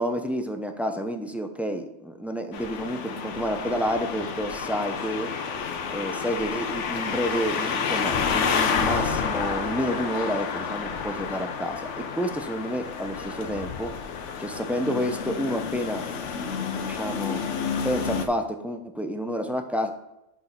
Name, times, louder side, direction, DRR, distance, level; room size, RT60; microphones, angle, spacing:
voice 1, 0.0-5.3 5.9-13.9 14.4-16.1 16.3-17.4 17.8-19.9, equal, ahead, 5 dB, 0.3 m, -29 dB
sound 1, 2.5-18.3, left 6 dB, 85° left, 1.1 m, -30 dB
6.1 x 6.1 x 5.2 m, 0.89 s
omnidirectional pair, 1.2 m